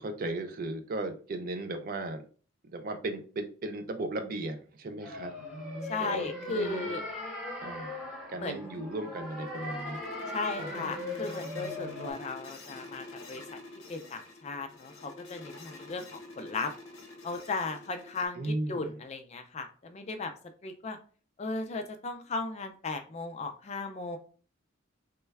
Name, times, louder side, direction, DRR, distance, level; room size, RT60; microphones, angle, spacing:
voice 1, 0.0-2.2 2.6-5.4 6.0-7.0 7.6-8.0 8.3-10.1 10.6-10.9 18.3-19.0, right 2 dB, 45° right, 7 dB, 0.4 m, -36 dB
sound 1, 5.0-12.1, left 2 dB, 5° right, 1.0 m, -39 dB
voice 2, 5.9-7.0 8.4-8.8 10.3-13.6 13.9-16.7 17.2-20.3 20.6-21.0 21.4-24.2, left 3 dB, 30° left, 6 dB, 0.3 m, -36 dB
sound 2, 8.8-18.3, left 2 dB, 70° left, 0.8 m, -47 dB
3.1 x 2.2 x 3.3 m, 0.40 s
head